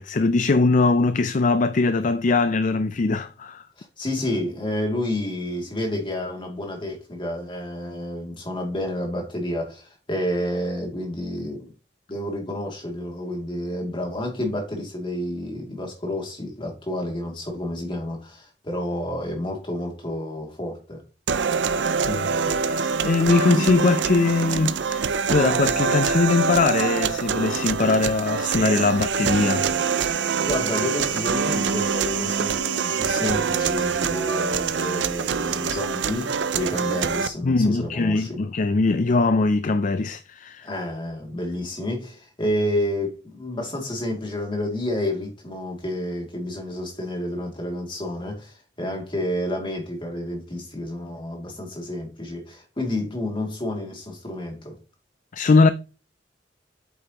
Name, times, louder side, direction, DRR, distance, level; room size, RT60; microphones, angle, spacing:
voice 1, 0.0-3.6 22.1-22.3 22.6-29.7 37.4-40.7 55.3-55.7, left 3 dB, 45° left, 0.5 m, -21 dB
voice 2, 3.8-11.7 12.1-21.0 30.4-38.4 40.6-54.8, left 1 dB, 30° left, 2.6 m, -30 dB
sound 1, 21.3-37.3, right 5 dB, 75° right, 0.5 m, -25 dB
8.4 x 7.0 x 3.0 m
head